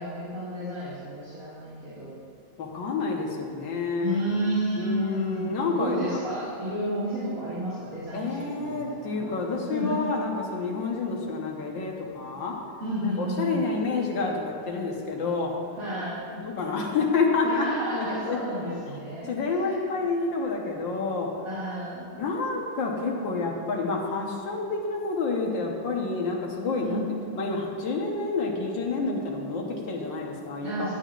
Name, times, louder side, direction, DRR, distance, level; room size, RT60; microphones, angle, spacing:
voice 1, 0.0-2.1 4.0-9.4 9.7-10.0 12.8-13.7 15.8-16.2 17.4-19.3 19.6-19.8 21.4-22.1 26.8-27.0 30.6-30.9, right 1 dB, 50° right, -11 dB, 2.7 m, -31 dB
voice 2, 2.6-4.2 4.8-6.2 8.1-12.6 13.2-15.5 16.3-17.7 17.9-18.4 19.2-21.3 22.2-27.0 27.4-30.9, left 4 dB, 85° left, 0 dB, 1.9 m, -28 dB
16.0 x 9.1 x 2.5 m, 2.5 s
omnidirectional pair, 2.0 m